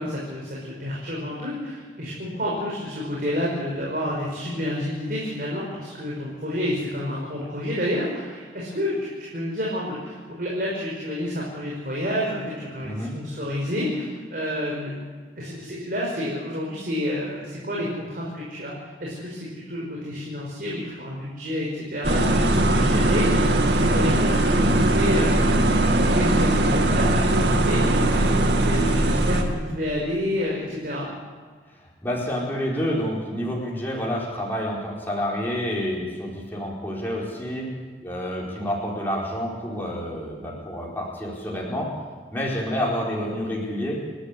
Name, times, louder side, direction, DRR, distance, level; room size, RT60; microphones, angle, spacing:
voice 1, 0.0-15.0 15.4-31.1, left 1 dB, 50° right, -4 dB, 5.4 m, -29 dB
voice 2, 12.8-13.1 23.9-24.2 32.0-37.7 38.0-41.9 42.3-44.0, equal, 10° left, -4 dB, 4.8 m, -28 dB
sound 1, 22.0-29.4, right 1 dB, 70° right, 2.1 m, -20 dB
29.5 x 12.5 x 8.3 m, 1.5 s
head